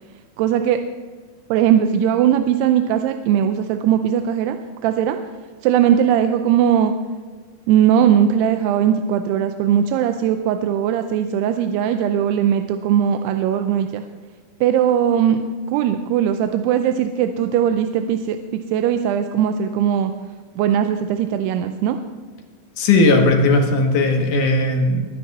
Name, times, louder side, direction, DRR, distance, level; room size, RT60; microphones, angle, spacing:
voice 1, 0.4-0.8 1.5-4.6 4.8-5.2 5.6-6.9 7.7-14.1 14.6-15.4 15.7-20.1 20.6-22.0, right 9 dB, 85° right, 8 dB, 2.7 m, -19 dB
voice 2, 22.8-25.2, left 2 dB, 60° left, 3 dB, 2.6 m, -17 dB
22.5 x 9.4 x 4.2 m, 1.6 s
omnidirectional pair, 4.7 m